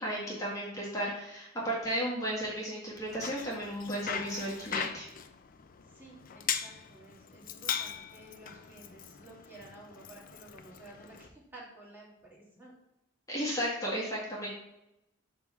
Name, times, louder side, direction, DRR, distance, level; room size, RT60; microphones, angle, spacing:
voice 1, 0.0-5.1 13.3-14.5, equal, 15° left, -6 dB, 1.7 m, -34 dB
Bicycle, 2.9-11.3, left 8 dB, 45° left, 0.4 m, -40 dB
voice 2, 5.9-12.7, right 2 dB, 10° right, -5 dB, 1.9 m, -53 dB
5.7 x 3.6 x 5.8 m, 0.88 s
head